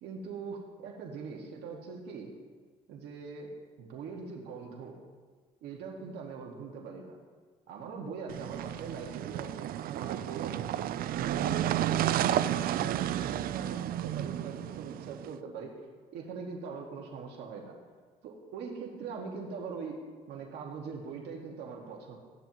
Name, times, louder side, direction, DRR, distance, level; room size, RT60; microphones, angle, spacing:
voice 1, 0.0-2.3 2.9-3.5 3.8-5.0 5.6-7.2 7.7-10.7 11.2-15.7 16.1-17.8 18.2-20.0 20.3-22.2, right 5 dB, 80° right, 0 dB, 1.8 m, -42 dB
sound 1, 8.3-15.3, right 12 dB, 60° right, 0.4 m, -32 dB
15.0 x 10.5 x 3.0 m, 1.5 s
cardioid pair, 110°, 17 cm